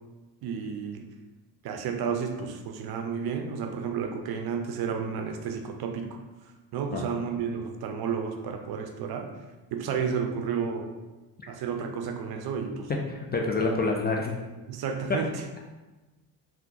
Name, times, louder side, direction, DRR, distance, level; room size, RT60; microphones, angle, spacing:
voice 1, 0.4-1.0 1.6-6.1 6.7-9.3 9.7-10.9 11.5-12.9 13.6-13.7 14.7-15.3, right 6 dB, 55° right, 4 dB, 0.6 m, -31 dB
voice 2, 13.1-14.3, left 3 dB, 25° left, 0 dB, 0.3 m, -27 dB
3.6 x 2.4 x 2.7 m, 1.2 s
hypercardioid pair, 55°, 46 cm